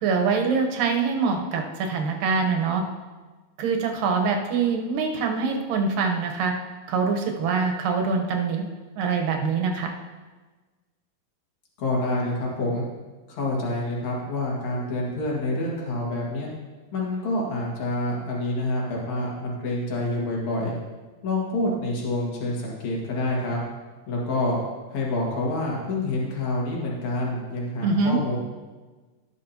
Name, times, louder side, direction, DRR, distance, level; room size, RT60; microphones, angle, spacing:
voice 1, 0.0-2.8 3.6-6.5 6.9-8.7 9.0-9.9 27.8-28.2, right 5 dB, 85° right, 3 dB, 2.7 m, -24 dB
voice 2, 11.8-12.8 13.3-16.5 16.9-20.7 21.2-23.6 24.1-24.6 24.9-28.4, left 2 dB, 60° left, -3 dB, 3.1 m, -27 dB
18.5 x 6.2 x 2.9 m, 1.3 s
omnidirectional pair, 3.8 m